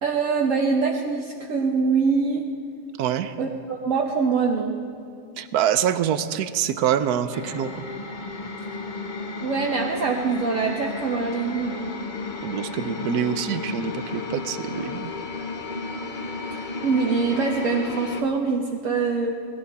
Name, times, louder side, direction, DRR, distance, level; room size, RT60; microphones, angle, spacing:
voice 1, 0.0-2.5 3.4-4.8 9.4-11.9 16.5-19.3, right 4 dB, 60° right, 0 dB, 1.3 m, -24 dB
voice 2, 3.0-3.3 5.4-7.8 12.4-15.1, right 9 dB, 80° right, 12 dB, 1.2 m, -25 dB
sound 1, 7.3-18.2, left 3 dB, 40° left, 0.8 m, -33 dB
19.0 x 15.5 x 4.2 m, 2.6 s
omnidirectional pair, 1.6 m